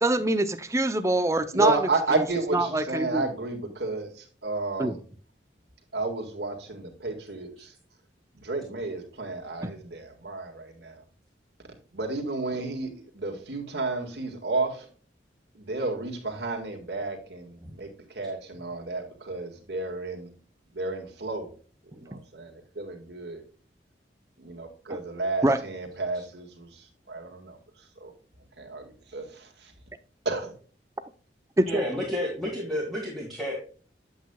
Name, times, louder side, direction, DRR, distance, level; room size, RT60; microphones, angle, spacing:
voice 1, 0.0-1.8 2.5-3.3 4.8-4.9 22.1-22.2 25.4-25.6 31.6-31.8, right 1 dB, 15° right, 11 dB, 0.6 m, -24 dB
voice 2, 1.5-5.0 5.9-7.7 8.3-11.0 11.9-14.9 15.5-20.3 20.7-21.5 21.8-23.4 24.4-28.1 28.6-29.7 30.3-30.5, right 3 dB, 75° right, 3 dB, 1.9 m, -32 dB
voice 3, 31.7-33.6, left 1 dB, ahead, -4 dB, 1.9 m, -31 dB
8.3 x 8.0 x 2.3 m, 0.40 s
head